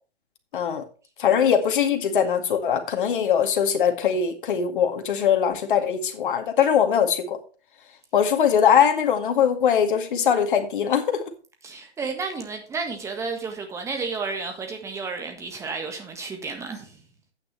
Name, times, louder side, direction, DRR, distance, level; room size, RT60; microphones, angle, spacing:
voice 1, 0.5-0.8 1.2-7.4 8.1-11.2, left 8 dB, 50° left, 2.1 m, -21 dB
voice 2, 11.6-17.0, right 4 dB, 10° right, 1.6 m, -32 dB
10.5 x 9.3 x 3.3 m
figure-of-eight pair, 135°, 33 cm